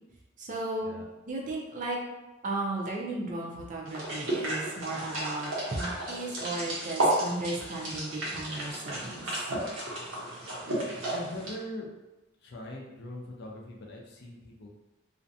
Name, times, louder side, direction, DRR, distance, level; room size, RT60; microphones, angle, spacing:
voice 1, 0.4-0.9 1.3-2.0 2.4-9.3, right 2 dB, 40° right, -2 dB, 0.5 m, -35 dB
sound 1, 3.8-11.5, right 1 dB, 80° right, 0.9 m, -33 dB
voice 2, 11.1-11.9 12.4-14.7, left 1 dB, 55° left, 0 dB, 0.5 m, -41 dB
2.5 x 2.1 x 2.6 m, 1.0 s
head